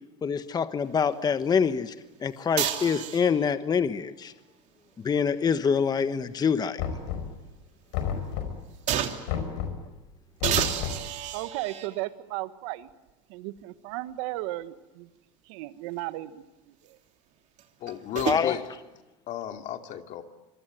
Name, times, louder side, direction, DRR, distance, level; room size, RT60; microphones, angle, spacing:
voice 1, 0.2-4.3 5.0-6.8 18.2-18.6, left 6 dB, 25° left, 11 dB, 1.3 m, -25 dB
sound 1, 2.6-3.5 5.3-6.8 7.3-7.4 8.9-9.4 10.4-12.0 12.9-13.0 17.6-18.4, right 10 dB, 50° right, 3.0 m, -31 dB
Knock, 6.8-7.5 7.9-8.7 9.3-9.9 10.4-11.1, left 8 dB, 75° left, 5.0 m, -31 dB
voice 2, 11.3-12.9 13.3-15.1 15.4-17.0, right 17 dB, 75° right, 12 dB, 1.5 m, -35 dB
voice 3, 17.8-18.6 19.3-20.2, left 10 dB, 55° left, 5 dB, 2.6 m, -34 dB
26.0 x 23.5 x 9.2 m, 1.1 s
supercardioid pair, 100°, 15 cm